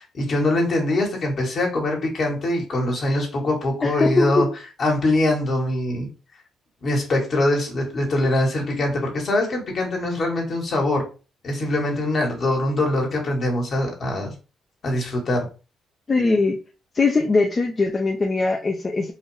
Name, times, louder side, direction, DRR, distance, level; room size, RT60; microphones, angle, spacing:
voice 1, 0.0-4.4 4.8-6.1 6.8-11.0 11.4-14.3 14.8-15.5, left 1 dB, 55° left, 1 dB, 1.6 m, -23 dB
voice 2, 3.8-4.5 16.1-16.6 16.9-19.1, left 3 dB, 35° left, 2 dB, 0.6 m, -21 dB
4.0 x 2.6 x 3.3 m, 0.33 s
supercardioid pair, 65°, 0 cm